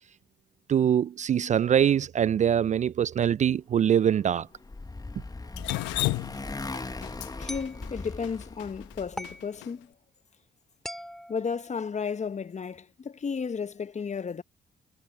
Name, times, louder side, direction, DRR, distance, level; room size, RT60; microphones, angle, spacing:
voice 1, 0.7-4.5, right 9 dB, 40° right, 0.4 m, -23 dB
Motorcycle, 4.1-9.2, left 3 dB, 20° left, 1.4 m, -39 dB
Drip, 5.6-9.7, left 23 dB, 70° left, 1.0 m, -33 dB
sound 1, 5.7-5.9 7.5-7.8 9.2-9.5 10.9-12.3, equal, ahead, 2.9 m, -42 dB
voice 2, 6.6-9.9 11.3-14.4, left 6 dB, 35° left, 1.4 m, -34 dB
figure-of-eight pair, 40°, 20 cm